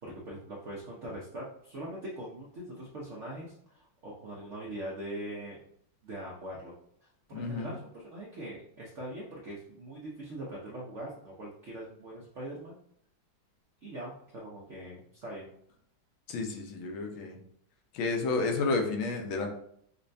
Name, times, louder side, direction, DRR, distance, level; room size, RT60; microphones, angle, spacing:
voice 1, 0.0-5.6 6.0-6.7 7.0-12.8 13.8-15.5, right 1 dB, 70° right, -4 dB, 0.6 m, -42 dB
voice 2, 7.3-7.7 16.3-17.4 17.9-19.5, left 3 dB, 85° left, 3 dB, 1.5 m, -31 dB
5.4 x 2.2 x 2.6 m, 0.68 s
omnidirectional pair, 2.2 m